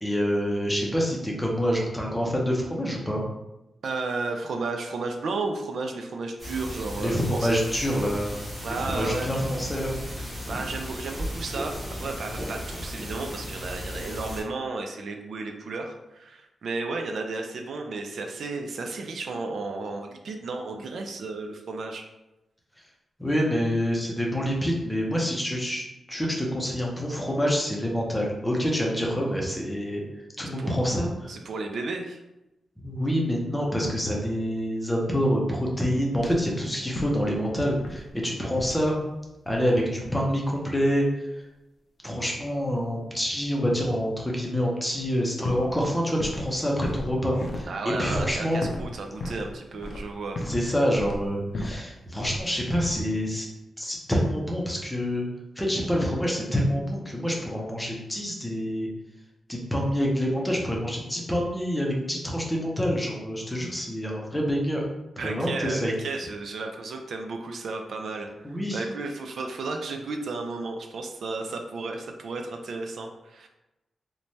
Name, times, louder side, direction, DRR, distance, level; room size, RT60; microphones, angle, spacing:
voice 1, 0.0-3.2 7.0-8.3 8.9-9.9 23.2-30.0 30.4-31.3 32.8-39.0 39.5-41.3 42.0-47.7 48.0-48.6 50.5-53.5 53.8-55.3 55.6-58.9 59.5-64.8 65.2-65.9 68.4-68.8, equal, 5° left, -2 dB, 0.5 m, -27 dB
voice 2, 3.8-7.6 8.6-9.3 10.2-22.1 30.5-30.8 31.3-32.2 47.7-50.5 65.2-73.5, right 3 dB, 70° right, 4 dB, 0.3 m, -33 dB
sound 1, 6.4-14.4, equal, 25° right, 1.4 m, -35 dB
sound 2, 36.1-36.5 36.9-37.4 37.7-38.1 38.6-38.9 39.5-39.7 40.0-40.2 44.9-45.1 45.4-46.5 46.8-50.7 50.9-51.9 52.2-52.4 52.7-53.0, left 1 dB, 55° left, 0.4 m, -35 dB
3.1 x 2.1 x 2.7 m, 0.95 s
wide cardioid pair, 135°, 0 cm